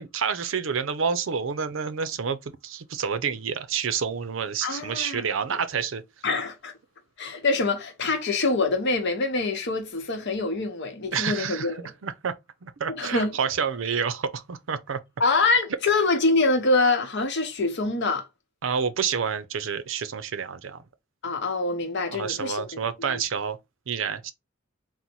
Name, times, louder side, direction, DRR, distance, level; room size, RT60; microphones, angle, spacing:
voice 1, 0.0-6.0 11.1-12.3 12.6-15.0 18.6-20.8 22.1-23.6 23.9-24.3, right 6 dB, 75° right, 0.5 m, -29 dB
voice 2, 4.6-5.2 6.2-6.7 7.2-11.8 12.9-13.4 15.2-18.3 21.2-22.8 23.1-23.2, left 3 dB, 60° left, 0.9 m, -25 dB
4.0 x 2.1 x 4.3 m
head